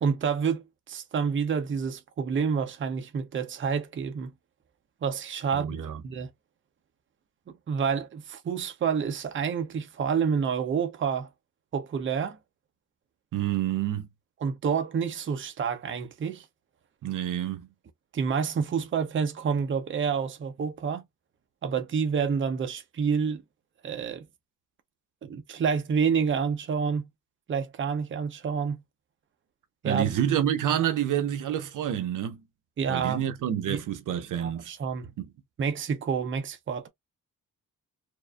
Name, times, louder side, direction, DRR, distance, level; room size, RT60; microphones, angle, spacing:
voice 1, 0.0-4.3 5.0-5.8 6.0-6.3 7.7-11.3 11.7-12.4 14.4-16.4 18.1-21.0 21.6-23.4 23.8-24.3 25.2-27.1 27.5-28.8 29.8-30.1 32.8-33.2 33.7-33.8 34.4-35.1 35.6-36.9, right 6 dB, 40° right, 0.7 m, -28 dB
voice 2, 5.5-6.0 13.3-14.1 17.0-17.7 29.8-32.4 32.9-34.7 35.2-35.3, right 10 dB, 75° right, 0.8 m, -28 dB
4.6 x 2.5 x 2.3 m
wide cardioid pair, 145°, 32 cm